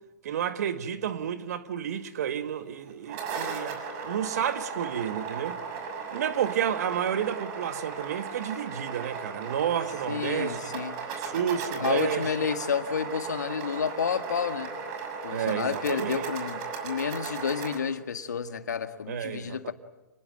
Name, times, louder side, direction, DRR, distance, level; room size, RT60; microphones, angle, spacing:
voice 1, 0.2-5.6 6.1-10.6 11.2-12.3 15.3-16.3 19.1-19.7, right 9 dB, 65° right, 1.9 m, -31 dB
sound 1, 2.9-17.8, right 5 dB, 45° right, 6.5 m, -36 dB
voice 2, 10.1-10.9 11.8-14.7 15.2-19.7, left 6 dB, 75° left, 1.8 m, -30 dB
28.5 x 21.0 x 9.0 m
hypercardioid pair, 115°, 9 cm